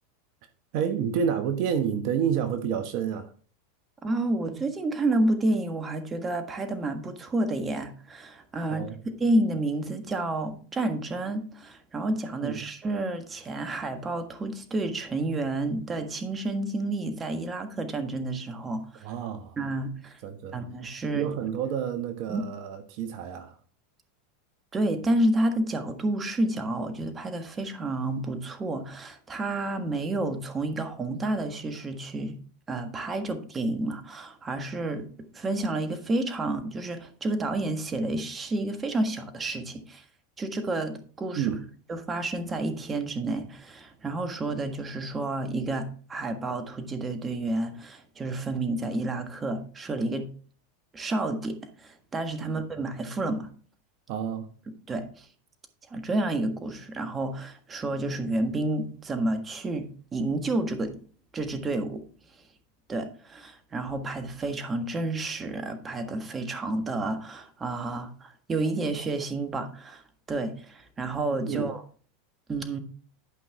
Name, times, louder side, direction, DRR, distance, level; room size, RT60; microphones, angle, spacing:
voice 1, 0.7-3.3 8.7-9.0 12.4-12.6 19.0-19.6 20.2-20.6 21.1-23.6 41.4-41.6 54.1-54.5 71.4-71.7, right 8 dB, 55° right, 1.1 m, -29 dB
voice 2, 4.0-8.9 9.2-19.0 19.6-20.2 20.5-21.3 22.3-22.4 24.7-32.4 32.7-35.1 35.3-40.0 40.4-41.5 41.9-50.3 50.9-53.5 54.9-55.3 55.9-61.0 61.3-62.1 62.9-70.0 70.3-71.8 72.5-72.8, right 2 dB, 25° right, 1.5 m, -30 dB
11.5 x 5.5 x 3.5 m
hypercardioid pair, 100°, 0 cm